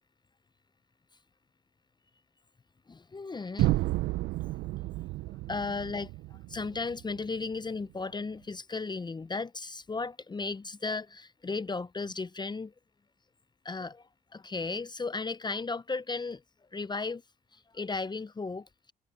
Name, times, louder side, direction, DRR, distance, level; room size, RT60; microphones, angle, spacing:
voice 1, 2.9-3.8 4.4-4.6 5.3-12.7 13.6-16.4 16.7-17.2 17.5-18.9, left 4 dB, 25° left, 0.8 m, -35 dB
sound 1, 3.6-7.5, right 18 dB, 75° right, 0.6 m, -31 dB
supercardioid pair, 55°, 17 cm